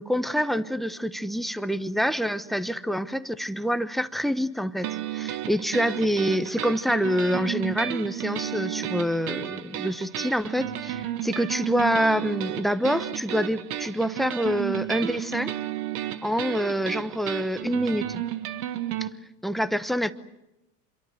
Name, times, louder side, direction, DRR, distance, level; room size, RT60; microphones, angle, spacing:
voice 1, 0.0-15.5 16.2-18.2 19.4-20.1, equal, ahead, 14 dB, 1.0 m, -26 dB
sound 1, 4.8-19.1, right 12 dB, 65° right, 1.8 m, -33 dB
27.0 x 23.0 x 8.0 m, 0.93 s
hypercardioid pair, 105°, 48 cm